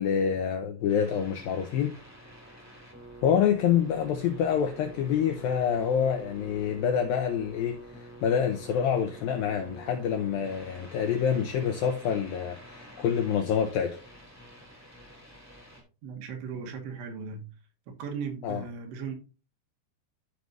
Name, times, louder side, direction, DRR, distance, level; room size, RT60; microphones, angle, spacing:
voice 1, 0.0-1.9 3.2-14.0 18.4-18.7, left 8 dB, 85° left, 2.1 m, -27 dB
sound 1, 0.9-15.8, right 1 dB, 10° right, 0.7 m, -48 dB
voice 2, 16.0-17.4 17.9-19.1, right 6 dB, 80° right, 3.2 m, -37 dB
13.0 x 4.7 x 2.6 m
omnidirectional pair, 4.9 m